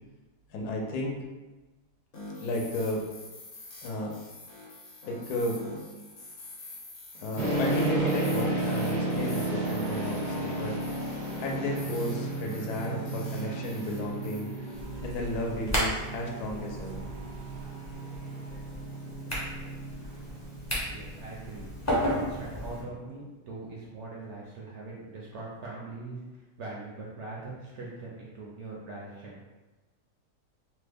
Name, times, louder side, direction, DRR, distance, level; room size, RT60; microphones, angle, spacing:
voice 1, 0.5-1.2 2.4-3.0 3.8-4.1 5.1-5.6 7.1-10.7 11.4-14.5 15.0-17.1, left 1 dB, 80° left, 0 dB, 1.1 m, -33 dB
sound 1, 2.1-15.2, left 2 dB, 55° left, 1.1 m, -46 dB
sound 2, 7.4-22.9, right 2 dB, 85° right, 1.3 m, -33 dB
sound 3, 14.7-22.8, equal, 20° left, 0.4 m, -34 dB
voice 2, 20.9-21.7 22.1-29.4, right 3 dB, 65° right, -4 dB, 0.7 m, -41 dB
3.1 x 2.1 x 3.3 m, 1.2 s
omnidirectional pair, 1.7 m